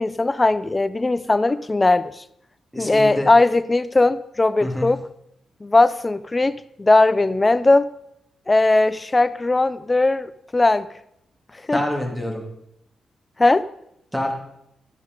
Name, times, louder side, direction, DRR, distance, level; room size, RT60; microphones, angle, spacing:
voice 1, 0.0-2.1 2.8-5.0 5.6-7.9 8.5-10.9 11.7-11.8 13.4-13.7, left 2 dB, 20° left, 15 dB, 0.5 m, -18 dB
voice 2, 2.7-3.3 4.6-4.9 11.7-12.4 14.1-14.3, left 1 dB, 5° right, 0 dB, 2.6 m, -26 dB
12.5 x 6.7 x 5.3 m, 0.78 s
cardioid pair, 90°, 0 cm